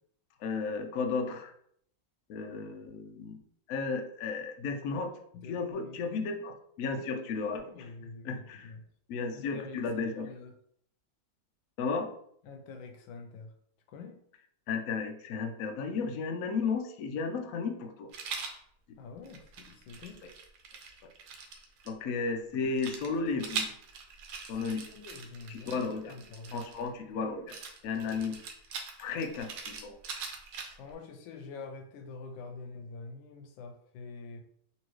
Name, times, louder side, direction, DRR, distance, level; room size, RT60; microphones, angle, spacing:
voice 1, 0.4-1.5 2.3-3.4 3.7-5.1 5.4-7.6 8.2-8.7 9.1-10.3 11.8-12.1 14.7-18.1 20.2-20.3 21.9-23.7 24.5-24.9 25.5-26.2 26.5-27.6 27.8-28.4 29.0-30.0, left 4 dB, 70° left, 4 dB, 0.8 m, -34 dB
voice 2, 5.3-6.0 6.9-8.8 9.3-10.5 12.4-13.5 13.9-14.2 19.0-20.2 24.5-24.6 24.9-26.6 30.8-34.4, left 4 dB, 90° left, 5 dB, 1.4 m, -46 dB
Rattle, 18.1-18.6 19.2-21.9 22.8-26.9 27.5-30.9, right 5 dB, 75° right, 1.3 m, -41 dB
4.1 x 2.7 x 3.1 m, 0.66 s
omnidirectional pair, 2.0 m